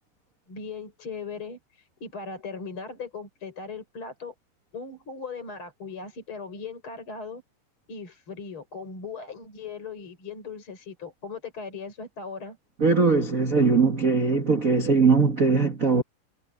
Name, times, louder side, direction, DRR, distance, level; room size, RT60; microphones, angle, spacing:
voice 1, 0.5-4.3 4.7-7.4 7.9-12.6, left 4 dB, 30° left, 5.5 m, -38 dB
voice 2, 12.8-16.0, right 4 dB, 90° right, 0.7 m, -20 dB
omnidirectional pair, 4.6 m